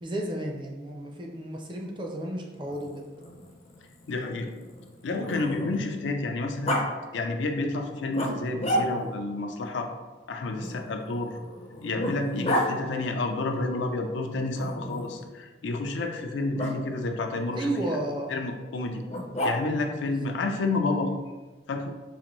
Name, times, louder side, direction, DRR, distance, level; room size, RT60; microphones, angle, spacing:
voice 1, 0.0-3.0 17.5-18.4 20.1-20.2, right 1 dB, 25° right, 1 dB, 0.4 m, -32 dB
Growling, 2.6-6.0 6.7-6.9 8.1-9.2 10.6-12.7 14.6-15.2 16.6-16.7 19.1-19.9, equal, 35° left, 0.4 m, -32 dB
voice 2, 4.1-4.5 5.0-6.8 7.1-9.9 10.3-11.4 11.8-17.7 18.3-19.0 19.4-21.1 21.7-21.9, left 2 dB, 90° left, 4 dB, 0.4 m, -30 dB
4.0 x 2.5 x 3.0 m, 1.2 s
head